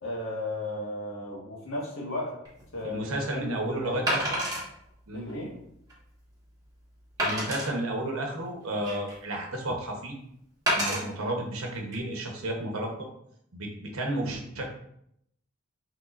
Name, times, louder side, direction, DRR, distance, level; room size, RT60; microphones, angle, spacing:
voice 1, 0.0-2.3 2.7-3.0 3.3-4.0 5.1-5.5, left 1 dB, 70° left, -3 dB, 1.5 m, -35 dB
Wood, 2.4-2.6 4.1-4.6 5.3-5.4 5.9-6.0 7.2-7.7 8.4-9.2 10.7-11.0 11.7-11.9, equal, 15° right, 1.4 m, -28 dB
voice 2, 2.8-4.4 5.1-5.3 7.2-10.1 10.7-13.1 13.5-14.6, right 1 dB, 80° right, 1 dB, 1.0 m, -32 dB
5.6 x 3.6 x 2.5 m, 0.74 s
head